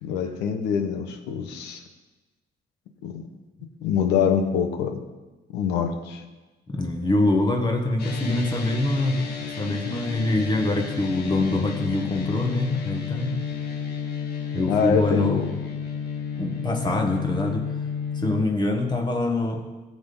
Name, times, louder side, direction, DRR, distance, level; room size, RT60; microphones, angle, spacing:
voice 1, 0.0-1.8 3.0-3.3 3.8-5.0 5.5-6.2 14.7-15.5, left 7 dB, 90° left, 7 dB, 1.2 m, -24 dB
voice 2, 6.7-9.3 9.6-13.3 14.5-15.4 16.4-17.7 18.1-19.6, left 2 dB, 25° left, 3 dB, 1.4 m, -24 dB
sound 1, 8.0-18.4, left 6 dB, 65° left, 1.8 m, -32 dB
15.0 x 7.7 x 3.9 m, 1.2 s
cardioid pair, 110°, 17 cm